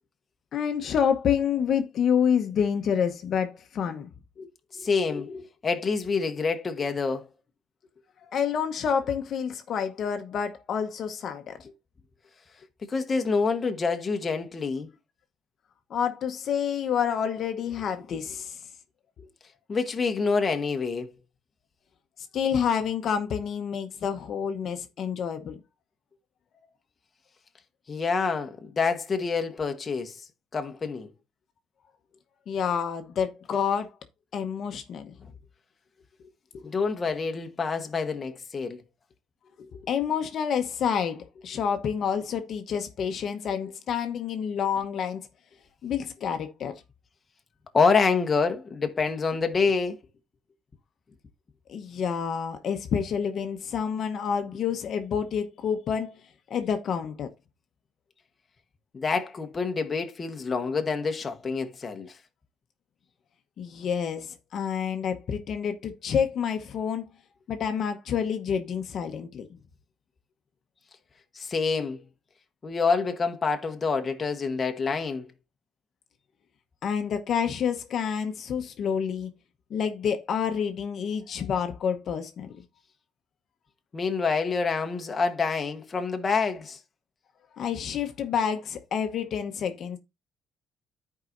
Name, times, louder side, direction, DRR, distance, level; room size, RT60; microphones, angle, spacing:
voice 1, 0.5-4.5 4.8-5.4 8.3-11.6 15.9-18.6 22.3-25.6 32.5-33.9 34.3-35.1 36.5-36.6 39.6-45.2 45.8-46.8 51.7-56.2 56.5-57.3 63.6-67.1 67.5-69.5 76.8-79.3 79.7-82.5 87.5-90.0, left 7 dB, 55° left, 1.0 m, -28 dB
voice 2, 4.7-5.3 5.6-7.3 12.9-14.9 19.7-21.1 27.9-30.2 30.5-31.1 36.6-38.8 47.7-50.0 58.9-62.2 71.3-72.0 72.6-75.3 83.9-86.8, left 4 dB, 30° left, 1.2 m, -27 dB
14.0 x 4.8 x 2.6 m
cardioid pair, 125°, 0 cm